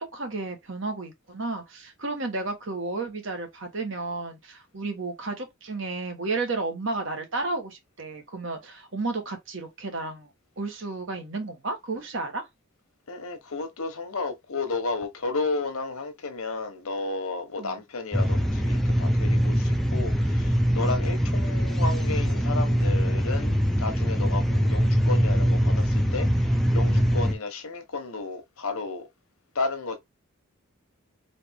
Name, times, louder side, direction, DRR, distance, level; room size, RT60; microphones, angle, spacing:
voice 1, 0.1-10.3 10.6-12.4 17.6-17.8, right 3 dB, 60° right, 1.3 m, -32 dB
voice 2, 13.1-29.1 29.5-30.0, left 3 dB, 80° left, 1.1 m, -32 dB
sound 1, 18.1-27.3, equal, ahead, 0.6 m, -23 dB
4.2 x 2.7 x 3.4 m
head